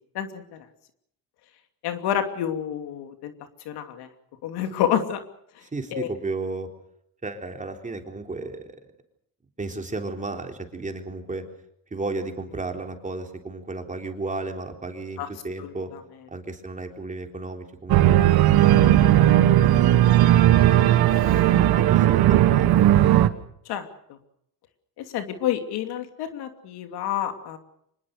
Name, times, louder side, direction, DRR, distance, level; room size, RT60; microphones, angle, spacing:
voice 1, 0.1-0.6 1.8-3.3 3.6-4.1 4.4-5.2 5.5-5.6 5.9-6.1 15.2-15.3 15.6-16.0 23.6-24.2 25.0-27.6, left 10 dB, 80° left, 7 dB, 2.8 m, -29 dB
voice 2, 5.7-6.7 7.2-8.7 9.6-11.4 11.9-15.9 16.3-20.4 21.1-22.9, right 3 dB, 20° right, 4 dB, 3.7 m, -34 dB
Organ, 17.9-23.3, right 13 dB, 70° right, 1.5 m, -17 dB
25.0 x 21.0 x 6.7 m, 0.73 s
cardioid pair, 105°, 38 cm